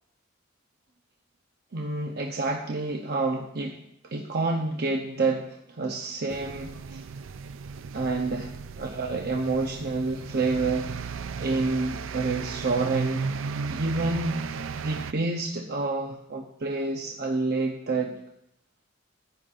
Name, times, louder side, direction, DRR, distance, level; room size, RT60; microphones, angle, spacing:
voice 1, 1.7-3.8 4.0-7.0 7.9-8.5 8.8-10.9 11.4-13.3 13.7-18.1, right 3 dB, 55° right, 1 dB, 0.8 m, -28 dB
sound 1, 6.3-15.1, right 5 dB, 90° right, 0.4 m, -35 dB
15.0 x 10.0 x 2.5 m, 0.76 s
head